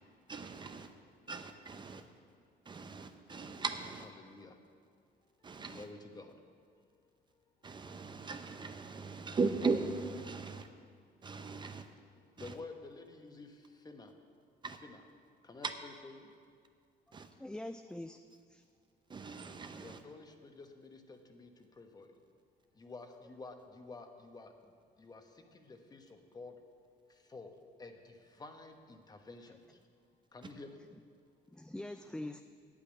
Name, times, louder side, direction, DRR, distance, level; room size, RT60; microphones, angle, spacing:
voice 1, 0.3-0.9 1.3-2.1 2.7-4.1 5.4-5.9 7.6-10.7 11.2-11.9 12.4-12.5 14.6-14.8 17.1-17.3 19.1-20.0, right 4 dB, 25° right, 0.7 m, -38 dB
voice 2, 4.2-4.6 5.4-6.3 12.3-14.1 14.8-15.0 15.4-16.3 19.8-22.1 22.7-24.5 25.0-26.5 27.1-27.5 27.8-29.8 30.3-30.8, left 3 dB, 25° left, 1.1 m, -51 dB
voice 3, 17.4-18.2 18.5-18.6 31.5-32.4, left 1 dB, 5° left, 0.3 m, -43 dB
8.7 x 8.3 x 8.9 m
cardioid pair, 110°, 17 cm